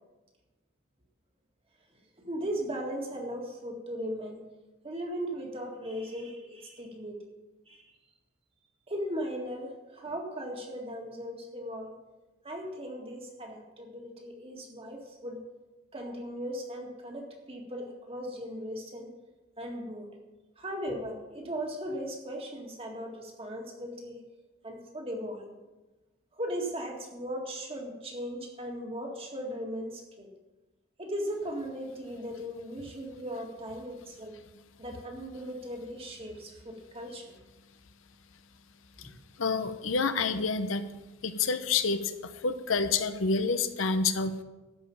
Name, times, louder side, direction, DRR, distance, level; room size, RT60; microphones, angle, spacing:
voice 1, 2.2-4.4 4.8-7.2 7.7-7.9 8.9-12.0 12.4-15.4 15.9-19.1 19.6-20.1 20.6-24.2 24.6-25.5 26.3-30.3 31.0-34.4 34.8-37.3 39.0-39.1, equal, 30° right, 1 dB, 1.9 m, -37 dB
voice 2, 39.4-40.8 41.2-44.4, left 4 dB, 75° left, 10 dB, 0.8 m, -28 dB
12.5 x 5.4 x 8.6 m, 1.1 s
head